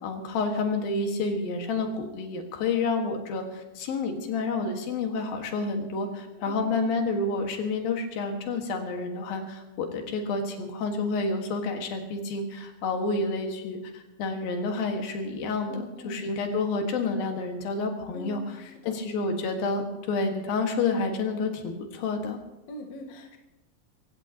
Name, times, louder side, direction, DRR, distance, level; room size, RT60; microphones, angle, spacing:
voice 1, 0.0-18.4 18.9-22.4, left 3 dB, 75° left, 3 dB, 3.5 m, -29 dB
voice 2, 6.4-6.8 15.7-16.3 18.1-18.9 22.7-23.4, left 2 dB, 55° left, 2 dB, 2.3 m, -42 dB
26.0 x 15.5 x 3.0 m, 1.0 s
omnidirectional pair, 4.2 m